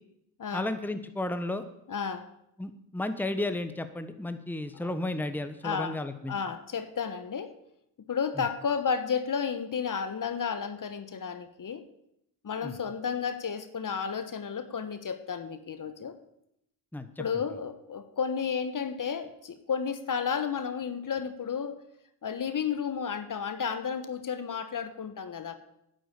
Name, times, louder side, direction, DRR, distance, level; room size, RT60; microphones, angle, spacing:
voice 1, 0.5-1.6 2.6-6.3 8.4-8.5 12.6-12.8 16.9-17.4, left 2 dB, 5° left, 10 dB, 1.1 m, -33 dB
voice 2, 1.9-2.2 5.6-6.0 6.3-7.5 8.1-11.8 12.4-16.1 17.2-21.8 22.2-25.6, left 6 dB, 45° left, 10 dB, 1.3 m, -32 dB
10.0 x 7.9 x 8.3 m, 0.79 s
supercardioid pair, 55°, 46 cm